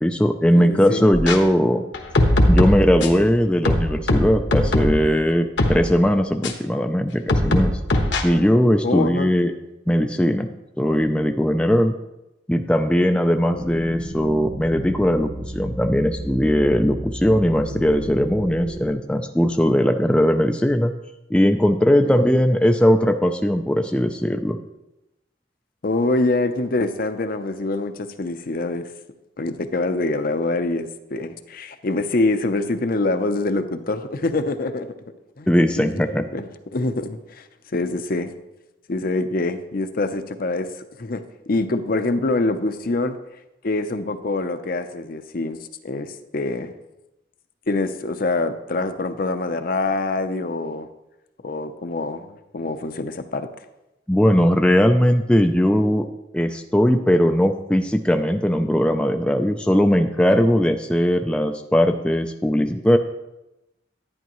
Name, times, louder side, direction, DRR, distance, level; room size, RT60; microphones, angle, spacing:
voice 1, 0.0-1.8 2.5-7.7 8.2-9.5 9.9-10.5 10.8-11.9 12.5-20.9 21.3-24.6 35.5-36.2 54.1-56.1 56.3-63.0, equal, 5° left, 5 dB, 0.4 m, -19 dB
voice 2, 0.5-1.1 8.8-9.3 22.0-22.3 25.8-28.9 29.4-35.0 35.4-35.5 35.7-37.5 37.7-38.3 38.9-40.7 41.0-43.2 43.6-46.7 47.7-50.9 51.4-53.5, left 2 dB, 50° left, 9 dB, 0.6 m, -25 dB
sound 1, 1.1-1.4 1.9-3.2 3.6-5.0 5.6-5.8 6.4-6.5 7.3-8.2, left 1 dB, 75° left, 1.2 m, -19 dB
sound 2, 13.5-18.9, right 1 dB, 65° right, 3.0 m, -33 dB
11.0 x 10.0 x 3.0 m, 0.95 s
head